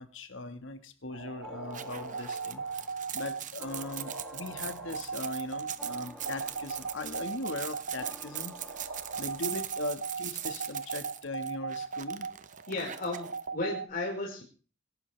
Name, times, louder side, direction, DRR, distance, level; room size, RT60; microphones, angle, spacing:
voice 1, 0.0-2.8 3.1-8.8 9.2-12.3, left 2 dB, 70° left, 9 dB, 1.8 m, -39 dB
sound 1, 1.1-13.8, right 5 dB, 85° right, 2.4 m, -38 dB
sound 2, 1.4-10.1, left 1 dB, 5° left, 1.9 m, -51 dB
sound 3, 1.7-13.4, right 11 dB, 40° right, 0.9 m, -41 dB
voice 2, 12.7-14.4, left 2 dB, 50° left, -2 dB, 5.0 m, -34 dB
26.0 x 11.5 x 3.4 m, 0.39 s
head